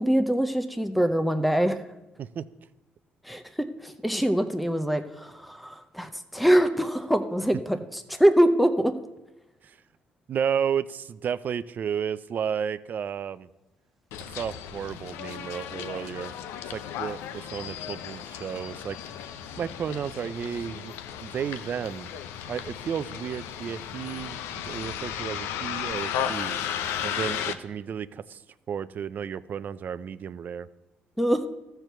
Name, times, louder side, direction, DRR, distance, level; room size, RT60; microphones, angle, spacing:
voice 1, 0.0-1.8 3.2-8.9 31.2-31.4, equal, ahead, 7 dB, 0.6 m, -24 dB
voice 2, 10.3-13.5 14.3-16.3 16.7-19.0 19.6-20.9 21.2-22.1 22.5-28.4 28.7-30.7, right 8 dB, 45° right, 15 dB, 0.4 m, -32 dB
Bus, 14.1-27.5, left 9 dB, 85° left, 0.6 m, -35 dB
13.5 x 4.6 x 6.7 m, 0.98 s
cardioid pair, 100°, 4 cm